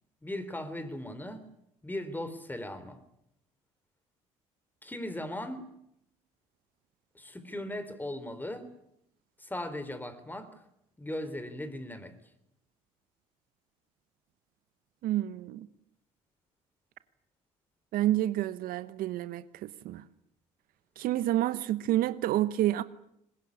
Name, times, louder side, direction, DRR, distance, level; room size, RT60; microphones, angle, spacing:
voice 1, 0.2-1.5 1.8-3.0 4.8-5.6 7.1-8.7 9.4-10.6 11.0-12.1, left 1 dB, 10° left, 3.9 m, -38 dB
voice 2, 15.0-15.7 17.9-20.0 21.0-22.8, right 13 dB, 65° right, 1.1 m, -29 dB
22.5 x 20.5 x 9.7 m
hypercardioid pair, 65°, 16 cm